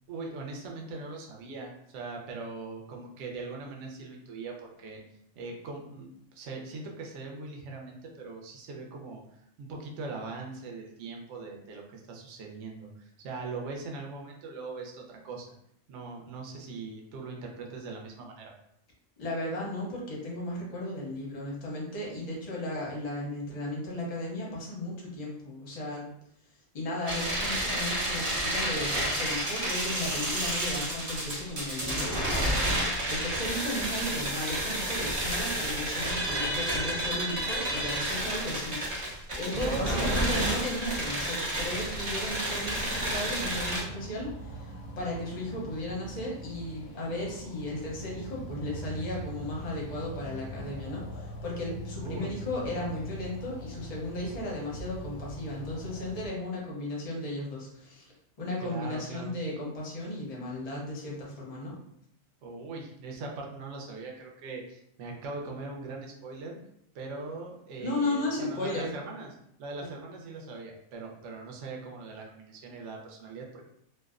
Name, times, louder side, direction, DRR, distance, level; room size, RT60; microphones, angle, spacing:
voice 1, 0.1-5.0 5.4-6.1 6.3-15.5 15.9-18.5 39.5-40.4 52.0-52.3 58.6-59.3 62.4-66.6 66.9-69.3 69.6-73.7, right 3 dB, 70° right, 0 dB, 0.8 m, -40 dB
voice 2, 19.2-26.1 26.7-32.8 33.1-38.8 39.4-58.1 58.4-61.8 67.8-68.9 69.8-69.9, left 1 dB, 40° left, -3 dB, 0.5 m, -35 dB
sound 1, 27.0-43.8, right 1 dB, 45° right, 0.4 m, -30 dB
sound 2, 41.7-56.3, equal, 85° left, 1.0 m, -42 dB
2.5 x 2.0 x 2.4 m, 0.73 s
omnidirectional pair, 1.4 m